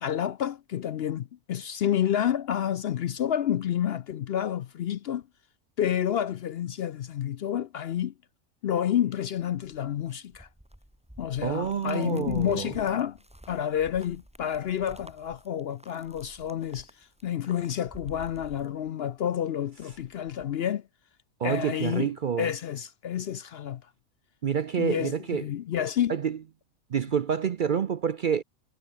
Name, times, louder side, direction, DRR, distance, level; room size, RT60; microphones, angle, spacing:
voice 1, 0.0-5.2 5.8-8.1 8.6-10.5 11.2-13.2 13.5-16.9 17.2-20.8 21.4-22.1 22.4-23.8 24.8-25.1 25.4-26.2, left 10 dB, 60° left, 0.7 m, -29 dB
sound 1, 9.4-19.3 19.6-20.5, equal, 5° right, 2.1 m, -51 dB
voice 2, 11.4-12.7 21.4-22.5 24.4-25.5 26.1-26.4 26.9-28.4, right 7 dB, 55° right, 0.6 m, -28 dB
omnidirectional pair, 1.4 m